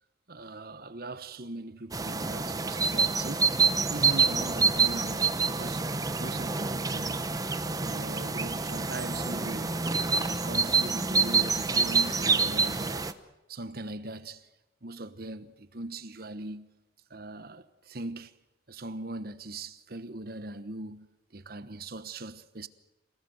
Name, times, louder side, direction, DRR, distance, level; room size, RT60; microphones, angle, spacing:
voice 1, 0.3-3.6 3.9-5.9 6.2-7.2 7.7-9.8 10.1-13.1 13.5-14.4 14.8-16.7 17.1-18.3 18.7-21.1 21.3-22.7, right 2 dB, 55° right, 1.2 m, -40 dB
sound 1, 1.9-13.1, right 4 dB, 20° right, 0.9 m, -27 dB
27.5 x 18.5 x 7.9 m
head